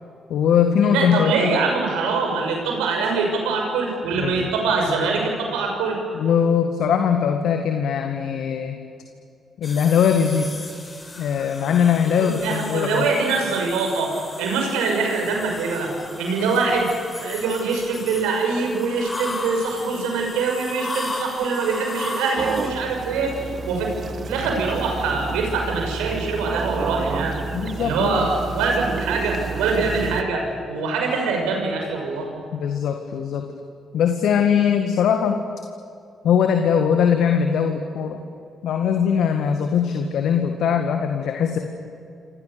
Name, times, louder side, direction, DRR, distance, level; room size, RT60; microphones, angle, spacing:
voice 1, 0.3-1.5 4.1-4.5 6.1-8.8 9.6-10.5 11.2-13.1 27.5-28.3 32.5-33.5 33.9-35.4 36.2-38.2 38.6-41.6, left 7 dB, 65° left, 5 dB, 1.9 m, -21 dB
voice 2, 0.8-6.0 12.1-15.9 16.2-23.9 24.3-27.3 27.8-32.3, right 4 dB, 75° right, 2 dB, 6.2 m, -24 dB
sound 1, 9.6-22.7, left 2 dB, 25° left, 6.6 m, -36 dB
sound 2, 22.4-30.2, right 4 dB, 55° right, 2.0 m, -30 dB
27.5 x 26.0 x 6.9 m, 2.5 s
hypercardioid pair, 40°, 0 cm